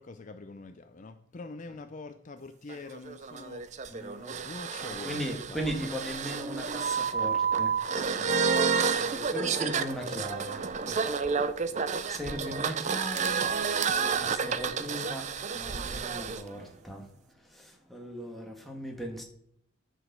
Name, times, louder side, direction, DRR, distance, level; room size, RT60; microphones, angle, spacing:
voice 1, 0.0-3.8 4.4-5.6 8.1-8.5 10.8-11.4, left 3 dB, 35° left, 0.5 m, -45 dB
sound 1, 2.7-16.4, right 5 dB, 35° right, 0.5 m, -30 dB
voice 2, 3.9-4.4 4.8-7.7 8.8-10.6 12.1-13.5 13.8-19.2, equal, ahead, 1.5 m, -38 dB
11.0 x 5.0 x 6.7 m
head